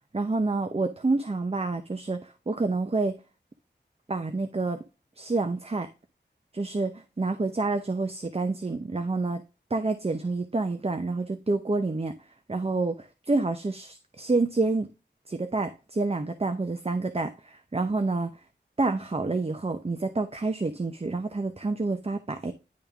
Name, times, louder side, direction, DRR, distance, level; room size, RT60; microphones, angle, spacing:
voice 1, 0.1-3.2 4.1-4.8 5.2-5.9 6.5-9.4 9.7-12.2 12.5-14.9 15.3-18.3 18.8-22.5, right 3 dB, 30° right, 0.6 m, -28 dB
10.5 x 3.6 x 3.5 m
wide cardioid pair, 75°, 19 cm